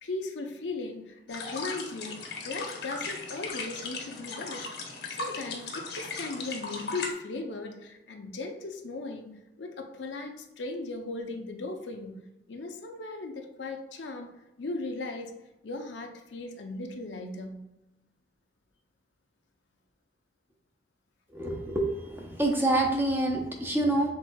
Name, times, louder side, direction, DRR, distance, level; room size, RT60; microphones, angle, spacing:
voice 1, 0.0-4.7 5.2-12.2 12.5-14.3 14.6-15.3 15.6-17.6, left 3 dB, 90° left, 4 dB, 0.6 m, -37 dB
sound 1, 1.3-7.1, left 3 dB, 70° left, 0.9 m, -37 dB
voice 2, 21.3-21.9 22.2-24.1, right 1 dB, 10° right, 0 dB, 0.7 m, -26 dB
5.9 x 3.6 x 2.3 m, 0.93 s
head